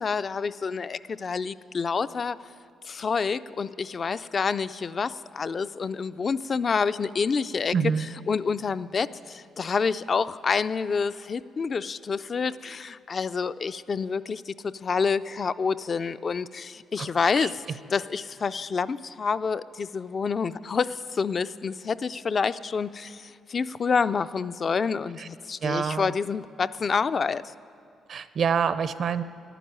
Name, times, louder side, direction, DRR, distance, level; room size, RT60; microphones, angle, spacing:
voice 1, 0.0-2.4 2.8-7.7 8.3-17.6 17.9-27.4, left 5 dB, 35° left, 15 dB, 0.3 m, -28 dB
voice 2, 7.7-8.1 17.0-17.1 17.4-17.5 25.2-25.3 25.6-26.1 28.1-29.2, right 6 dB, 50° right, 14 dB, 0.5 m, -26 dB
11.5 x 10.0 x 9.5 m, 2.3 s
cardioid pair, 120°, 0 cm